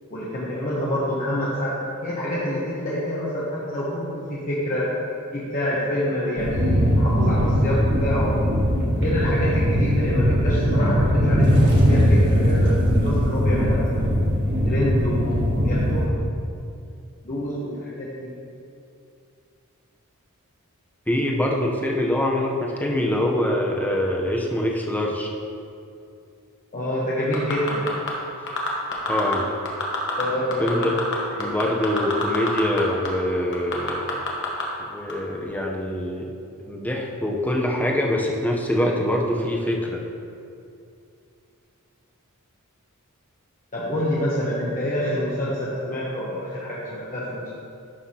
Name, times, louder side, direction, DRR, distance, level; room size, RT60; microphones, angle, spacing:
voice 1, 0.1-4.8 5.3-8.3 8.9-11.5 11.9-13.9 14.6-16.2 17.2-18.3 26.7-27.9 30.2-30.9 31.3-31.8 43.7-47.5, equal, 40° left, -7 dB, 1.0 m, -27 dB
sound 1, 6.4-16.1, equal, 55° right, 1.6 m, -20 dB
voice 2, 21.1-25.3 29.1-29.5 30.6-30.9 31.4-34.0 34.9-40.0, left 1 dB, 10° left, -1 dB, 0.7 m, -24 dB
sound 2, 27.3-28.1 28.5-29.4 29.7-30.2 30.5-32.8 33.1-33.2 33.5-34.6 35.1-35.2, left 4 dB, 55° left, 1.2 m, -27 dB
11.5 x 5.7 x 2.9 m, 2.5 s
head